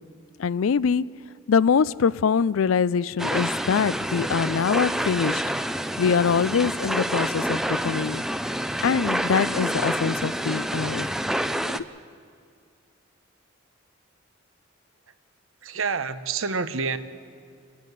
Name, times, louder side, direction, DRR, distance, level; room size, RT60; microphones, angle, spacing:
voice 1, 0.4-1.1 1.5-5.4 6.0-8.2 8.8-11.1 11.7-11.8, left 6 dB, 80° left, 0.4 m, -23 dB
sound 1, 3.2-11.8, equal, ahead, 0.5 m, -28 dB
voice 2, 15.6-17.0, right 5 dB, 80° right, 0.9 m, -27 dB
27.5 x 10.5 x 9.3 m
head